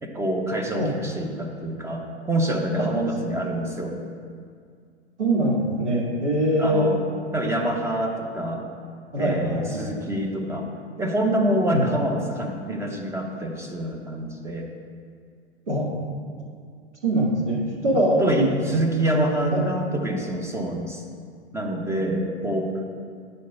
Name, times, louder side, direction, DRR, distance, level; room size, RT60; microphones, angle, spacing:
voice 1, 0.0-4.0 6.6-7.0 7.3-8.6 9.2-10.7 11.0-14.7 17.9-21.0 21.5-22.7, right 1 dB, 10° right, 2 dB, 0.8 m, -26 dB
voice 2, 5.2-6.9 9.1-9.9 11.7-11.9 15.7-15.9 17.0-18.5 19.5-19.6 22.2-22.3, right 1 dB, 85° right, -4 dB, 2.1 m, -23 dB
9.4 x 4.3 x 5.4 m, 2.2 s
hypercardioid pair, 110°, 34 cm